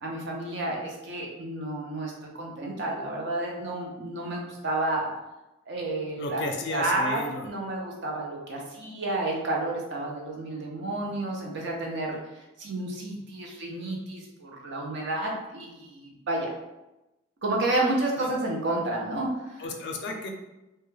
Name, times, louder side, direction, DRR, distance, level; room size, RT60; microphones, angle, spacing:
voice 1, 0.0-5.1 5.7-6.4 6.7-16.5 17.4-19.6, right 2 dB, 55° right, -1 dB, 0.5 m, -31 dB
voice 2, 6.2-7.5 18.2-18.3 19.6-20.3, left 2 dB, 55° left, 2 dB, 0.4 m, -33 dB
2.3 x 2.1 x 3.1 m, 0.97 s
head